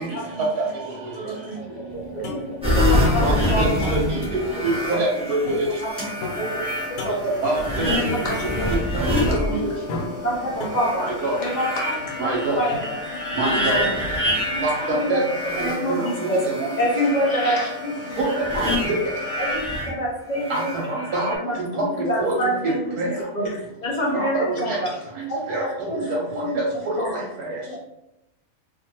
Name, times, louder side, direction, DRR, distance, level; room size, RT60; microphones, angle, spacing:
voice 1, 1.1-1.5 2.1-4.0 4.9-5.0 5.8-5.9 6.3-6.6 6.9-7.3 7.8-8.8 9.3-9.6 10.2-11.1 11.4-14.0 14.5-15.2 15.6-17.9 18.2-18.4 19.4-19.5 19.9-20.7 21.3-22.9 23.3-25.0 25.3-26.0 26.4-26.5 27.0-27.3, equal, 50° left, -4 dB, 0.5 m, -27 dB
voice 2, 1.7-2.9 3.2-3.5 5.4-5.5 6.4-6.5 7.6-7.7 9.6-9.7 12.9-13.0 13.9-14.4 15.2-15.6 20.3-20.4 22.7-22.8 23.4-23.5 24.6-24.9, left 1 dB, 70° left, -2 dB, 0.8 m, -38 dB
sound 1, 1.9-13.4, left 2 dB, 90° left, 1.1 m, -38 dB
sound 2, 2.6-10.0 10.6-19.9 20.4-21.4, left 1 dB, 5° right, 0.5 m, -26 dB
voice 3, 3.2-4.2 4.6-5.6 7.4-8.3 8.7-9.7 11.0-11.3 12.2-12.6 13.3-13.8 14.6-15.2 15.6-16.7 18.2-19.0 20.5-21.3 21.8-21.9 22.2-22.3 22.6-23.1 24.1-24.8 25.2-26.2 26.5-26.6 27.1-27.5, right 2 dB, 80° right, -3 dB, 1.2 m, -26 dB
sound 3, 5.9-19.8, left 5 dB, 10° left, 1.3 m, -37 dB
2.6 x 2.5 x 2.7 m, 0.89 s
omnidirectional pair, 1.6 m